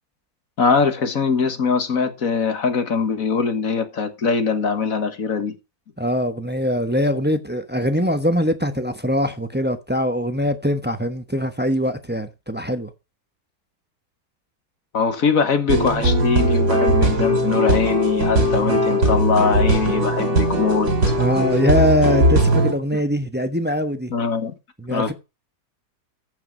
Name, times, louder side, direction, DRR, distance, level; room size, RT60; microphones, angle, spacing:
voice 1, 0.6-5.5 14.9-20.9 22.9-23.0 24.1-24.5 24.9-25.1, left 5 dB, 50° left, 1.8 m, -22 dB
voice 2, 6.0-12.9 21.2-24.1 24.8-25.1, equal, 10° right, 0.6 m, -22 dB
sound 1, 15.7-22.7, equal, 65° right, 3.7 m, -19 dB
14.5 x 5.8 x 5.4 m
omnidirectional pair, 1.9 m